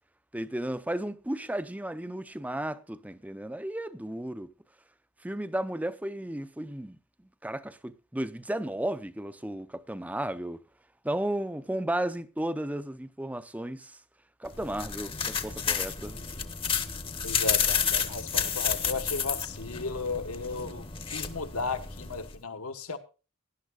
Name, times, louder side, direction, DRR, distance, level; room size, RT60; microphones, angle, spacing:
voice 1, 0.3-4.5 5.2-7.0 7.4-10.6 11.0-14.0 14.4-16.2, right 1 dB, 5° right, 0.6 m, -34 dB
sound 1, 14.4-22.3, left 7 dB, 25° left, 0.9 m, -31 dB
voice 2, 17.2-23.0, left 4 dB, 75° left, 1.5 m, -35 dB
18.5 x 11.5 x 2.4 m
head